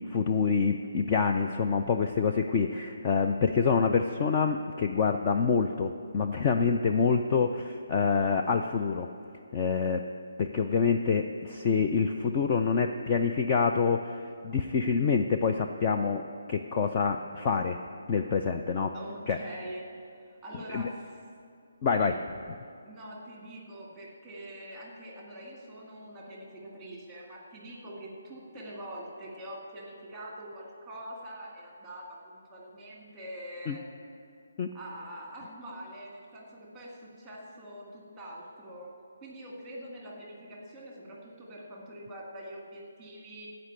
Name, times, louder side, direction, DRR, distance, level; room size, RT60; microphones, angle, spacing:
voice 1, 0.1-9.1 9.5-10.0 10.4-16.2 16.5-17.8 18.1-18.9 19.3-19.4 20.7-20.9 21.8-22.2 33.7-33.8 34.6-34.7, left 5 dB, 20° left, 4 dB, 0.4 m, -26 dB
voice 2, 18.9-21.2 21.9-22.2 22.8-33.8 34.7-38.9 39.2-43.5, right 1 dB, 5° right, -3 dB, 2.1 m, -44 dB
15.0 x 5.2 x 9.0 m, 2.3 s
hypercardioid pair, 170°, 0 cm